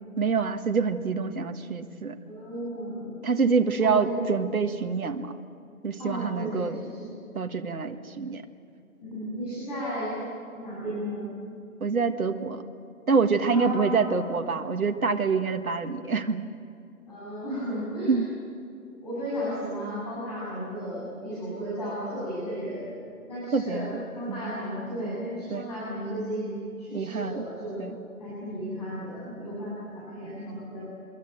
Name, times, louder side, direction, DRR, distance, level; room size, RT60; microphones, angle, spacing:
voice 1, 0.2-2.2 3.2-5.3 5.8-6.8 7.4-8.4 11.8-12.6 13.1-16.5 18.1-18.3 23.5-24.0 24.3-24.5 25.5-25.7 26.9-27.4 27.8-28.0, right 5 dB, 75° right, 6 dB, 1.8 m, -26 dB
voice 2, 2.2-3.2 3.8-4.2 6.0-7.2 9.0-10.2 10.5-11.3 13.5-14.2 17.1-18.2 18.8-22.9 23.3-27.8 28.2-30.8, equal, 25° left, -9 dB, 7.6 m, -34 dB
26.0 x 22.0 x 7.7 m, 2.5 s
hypercardioid pair, 175°, 43 cm